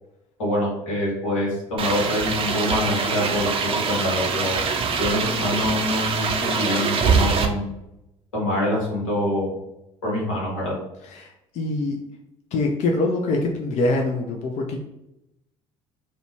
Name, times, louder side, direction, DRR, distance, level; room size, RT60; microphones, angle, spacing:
voice 1, 0.4-4.6 5.0-7.7 8.3-9.5 10.0-10.7, left 1 dB, 85° left, -4 dB, 0.9 m, -25 dB
sound 1, 1.8-7.5, right 5 dB, 35° right, 0.4 m, -24 dB
voice 2, 11.1-12.0 12.5-14.8, left 2 dB, 45° left, 2 dB, 0.4 m, -24 dB
2.6 x 2.1 x 2.9 m, 0.86 s
figure-of-eight pair, 55°, 16 cm